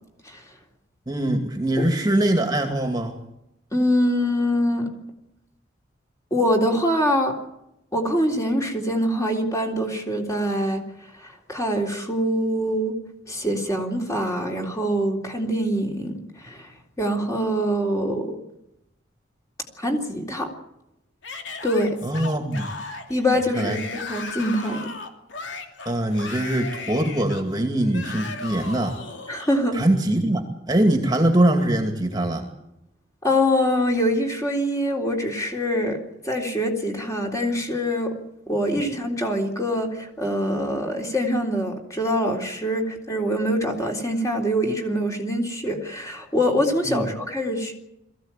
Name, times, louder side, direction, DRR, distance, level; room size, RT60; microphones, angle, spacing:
voice 1, 1.1-3.2 22.0-22.7 23.6-23.8 25.9-29.0 29.7-32.5 46.9-47.1, right 1 dB, 20° right, 4 dB, 2.3 m, -22 dB
voice 2, 3.7-4.9 6.3-7.4 7.9-10.8 11.2-13.0 13.3-16.7 17.0-18.3 19.8-20.5 21.6-22.0 23.1-24.9 29.3-29.8 33.2-36.0 36.2-38.2 38.5-47.7, equal, 15° left, 1 dB, 3.6 m, -24 dB
Yell / Screaming, 21.2-29.5, left 3 dB, 70° left, 2.8 m, -36 dB
22.5 x 15.5 x 9.1 m, 0.85 s
head